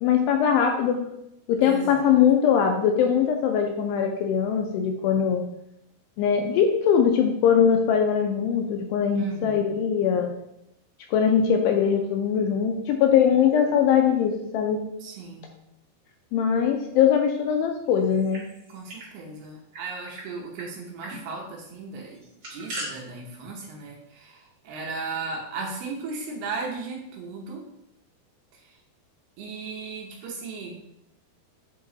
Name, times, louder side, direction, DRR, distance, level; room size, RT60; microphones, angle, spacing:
voice 1, 0.0-1.0 1.5-5.4 6.2-10.3 11.1-14.8 16.3-18.5, left 7 dB, 85° left, 4 dB, 2.5 m, -21 dB
voice 2, 1.6-2.2 9.2-9.8 15.0-15.5 18.7-27.6 28.5-28.7 29.4-30.8, right 4 dB, 75° right, -1 dB, 2.6 m, -36 dB
sound 1, 18.0-19.1 19.4-19.5 19.7-20.3 20.6-20.7 21.0-21.2 22.1-22.9, right 1 dB, 45° right, 2.1 m, -39 dB
8.3 x 3.0 x 3.8 m, 0.82 s
omnidirectional pair, 5.1 m